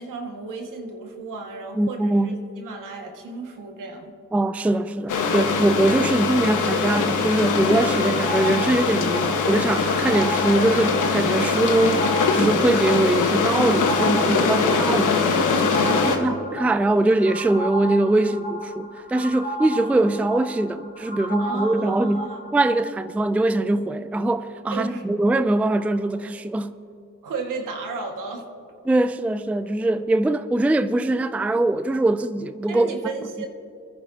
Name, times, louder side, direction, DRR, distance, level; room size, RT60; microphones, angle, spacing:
voice 1, 0.0-4.1 13.9-15.2 15.9-16.4 21.4-22.4 24.7-25.0 27.2-28.5 32.7-33.5, right 4 dB, 75° right, 1.9 m, -34 dB
voice 2, 1.7-2.4 4.3-12.0 12.3-15.2 15.6-26.7 28.9-33.0, right 2 dB, 5° right, 0.4 m, -22 dB
sound 1, 5.1-16.2, left 4 dB, 70° left, 1.4 m, -22 dB
sound 2, 7.8-22.6, right 1 dB, 30° left, 2.1 m, -33 dB
24.5 x 10.5 x 2.9 m
supercardioid pair, 50°, 32 cm